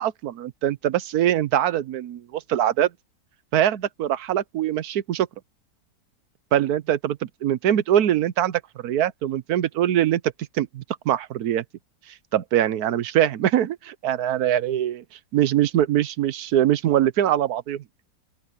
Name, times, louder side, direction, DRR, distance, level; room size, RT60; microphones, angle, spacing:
voice 1, 0.0-2.9 3.5-5.3 6.5-11.6 12.1-15.0 15.3-17.8, right 11 dB, 85° right, 1.3 m, -23 dB
open air
omnidirectional pair, 1.6 m